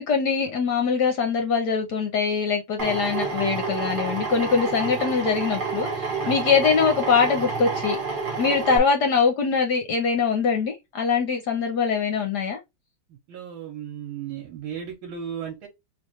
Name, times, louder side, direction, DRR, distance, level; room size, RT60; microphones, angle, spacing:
voice 1, 0.0-8.0 8.4-12.6, left 5 dB, 65° left, 1.2 m, -23 dB
Drill, 2.8-8.8, right 4 dB, 35° right, 1.0 m, -29 dB
voice 2, 13.1-15.7, right 8 dB, 80° right, 1.7 m, -35 dB
3.4 x 3.2 x 3.1 m
omnidirectional pair, 2.2 m